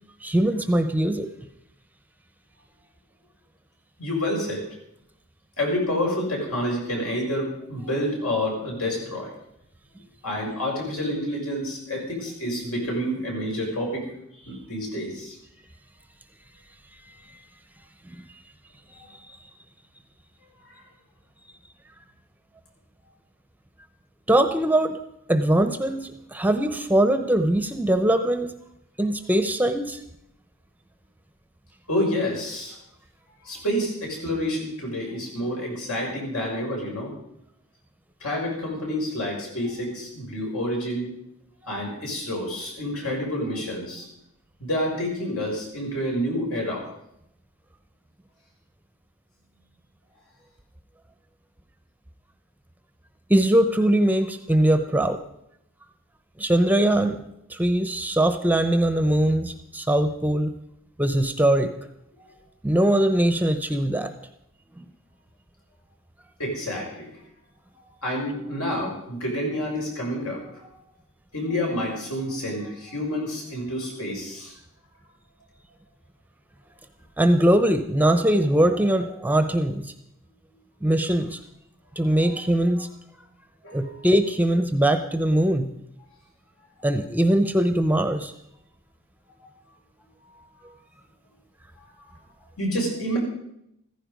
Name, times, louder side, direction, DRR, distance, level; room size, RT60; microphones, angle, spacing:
voice 1, 0.2-1.3 24.3-25.0 25.3-28.5 29.0-30.0 53.3-55.2 56.4-57.2 57.5-60.5 61.0-61.7 62.6-64.1 64.8-64.9 77.2-79.8 80.8-81.4 82.0-82.9 83.7-85.7 86.8-88.3, right 1 dB, 10° right, 9 dB, 0.8 m, -21 dB
voice 2, 4.0-4.6 5.6-9.3 10.2-14.1 14.4-15.4 20.7-20.8 31.9-32.8 33.4-37.1 38.2-41.1 41.6-44.1 44.6-46.9 62.2-62.3 66.4-67.1 68.0-70.7 71.3-74.5 82.2-82.3 83.6-84.1 92.6-93.2, equal, 75° left, -1 dB, 6.4 m, -28 dB
15.0 x 15.0 x 5.3 m, 0.80 s
head